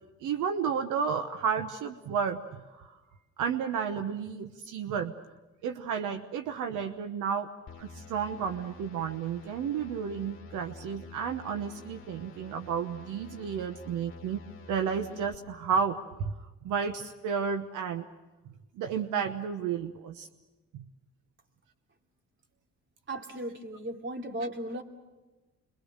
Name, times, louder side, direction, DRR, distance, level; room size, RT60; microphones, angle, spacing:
voice 1, 0.2-2.9 3.4-5.1 5.6-7.5 7.8-16.3 16.6-18.0 18.7-20.3 20.7-20.8, right 7 dB, 85° right, 7 dB, 1.1 m, -32 dB
sound 1, 7.7-15.3, left 4 dB, 40° left, 2.1 m, -49 dB
voice 2, 23.1-24.8, right 1 dB, 40° right, 2 dB, 3.1 m, -36 dB
27.0 x 23.0 x 6.6 m, 1.1 s
cardioid pair, 90°, 30 cm